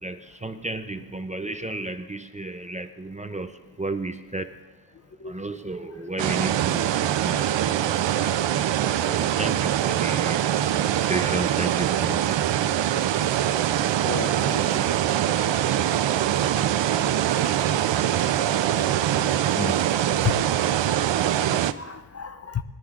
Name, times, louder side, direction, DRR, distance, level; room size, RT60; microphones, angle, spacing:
voice 1, 0.0-4.5 5.2-7.5 9.0-12.6 13.6-13.7, right 2 dB, 15° right, 8 dB, 0.5 m, -33 dB
sound 1, 6.2-21.7, right 11 dB, 85° right, 0.5 m, -23 dB
sound 2, 13.1-19.3, left 2 dB, 60° left, 3.3 m, -52 dB
voice 2, 14.0-14.6 19.6-19.7 20.2-20.4 21.3-22.6, left 6 dB, 35° left, 10 dB, 0.6 m, -31 dB
20.0 x 11.5 x 2.5 m, 1.1 s
wide cardioid pair, 115°, 43 cm